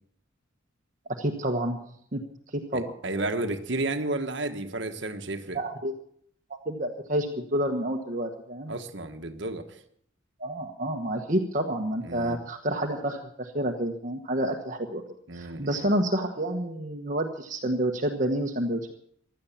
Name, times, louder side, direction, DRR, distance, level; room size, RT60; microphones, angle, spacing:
voice 1, 1.2-1.8 2.1-2.2 2.5-2.9 5.5-5.9 6.5-8.7 10.4-15.0 15.3-18.8, right 1 dB, 40° right, 3 dB, 1.3 m, -29 dB
voice 2, 2.7-5.6 8.7-9.8 12.0-12.4 15.3-15.9, right 2 dB, 60° right, 6 dB, 1.4 m, -32 dB
16.0 x 11.5 x 7.3 m, 0.65 s
head